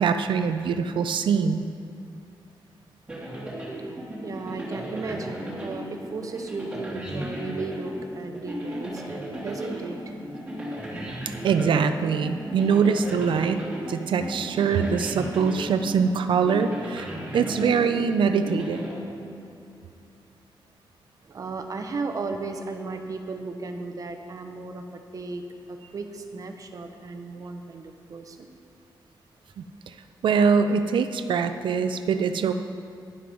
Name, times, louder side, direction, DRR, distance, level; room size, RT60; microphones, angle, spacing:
voice 1, 0.0-1.7 11.4-18.9 29.6-29.9 30.2-32.5, right 6 dB, 80° right, 9 dB, 0.5 m, -23 dB
sound 1, 3.1-19.6, equal, 15° right, 2.1 m, -35 dB
voice 2, 4.2-10.1 21.2-25.4 25.7-28.5, right 3 dB, 45° right, 6 dB, 0.8 m, -35 dB
11.0 x 7.6 x 5.3 m, 2.5 s
wide cardioid pair, 160°, 8 cm